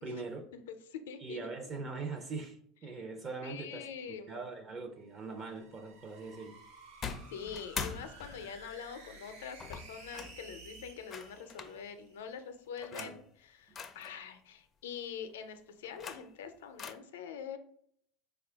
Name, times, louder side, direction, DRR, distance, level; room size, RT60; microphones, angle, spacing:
voice 1, 0.0-0.5 1.2-6.5 12.9-13.2, right 3 dB, 35° right, 4 dB, 0.6 m, -42 dB
voice 2, 0.7-1.5 3.4-4.4 7.3-17.6, left 7 dB, 90° left, 8 dB, 0.5 m, -44 dB
sound 1, 4.9-12.4, right 3 dB, 85° right, 1.2 m, -54 dB
sound 2, 7.0-8.7 9.6-10.4 11.1-11.8 12.8-13.2 13.8-14.1 15.7-16.4 16.8-16.9, left 6 dB, 30° left, 0.4 m, -42 dB
4.3 x 2.3 x 3.3 m, 0.67 s
supercardioid pair, 110°, 0 cm